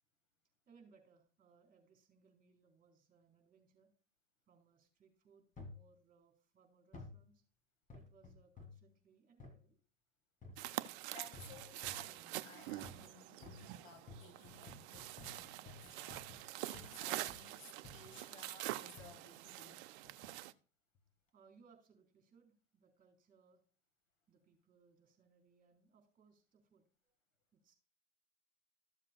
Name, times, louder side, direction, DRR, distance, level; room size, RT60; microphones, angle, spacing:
voice 1, 0.7-3.9 4.5-7.4 7.9-9.8 21.3-23.6 24.3-27.1 27.5-27.8, right 5 dB, 20° right, 4.0 m, -68 dB
sound 1, 5.6-5.9 6.9-7.2 7.9-8.9 9.4-9.6 10.4-10.8 11.3-12.1 12.8-13.1 13.4-17.0 17.3-17.5 17.8-18.2 19.0-19.2 20.0-20.4 20.9-21.0, left 3 dB, 20° left, 2.0 m, -54 dB
sound 2, 10.6-20.5, right 16 dB, 55° right, 0.6 m, -46 dB
voice 2, 11.1-19.8, left 5 dB, 75° left, 1.8 m, -59 dB
14.0 x 7.4 x 2.3 m
hypercardioid pair, 95°, 39 cm